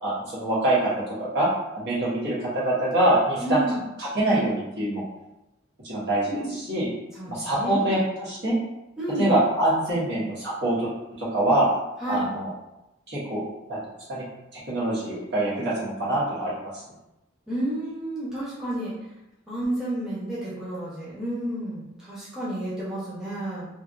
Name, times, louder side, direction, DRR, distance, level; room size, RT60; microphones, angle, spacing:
voice 1, 0.0-0.8 1.2-1.5 1.7-3.6 4.0-5.0 5.8-6.9 7.3-8.6 9.2-10.9 11.2-11.7 12.1-12.5 13.1-13.4 13.7-13.8 14.1-14.2 14.5-16.8, right 1 dB, 55° right, -8 dB, 1.3 m, -24 dB
voice 2, 3.4-3.8 6.3-6.5 7.1-7.8 9.0-9.3 12.0-12.3 17.5-18.9 19.5-23.7, right 1 dB, 5° right, -11 dB, 0.9 m, -30 dB
3.3 x 2.5 x 2.5 m, 0.92 s
head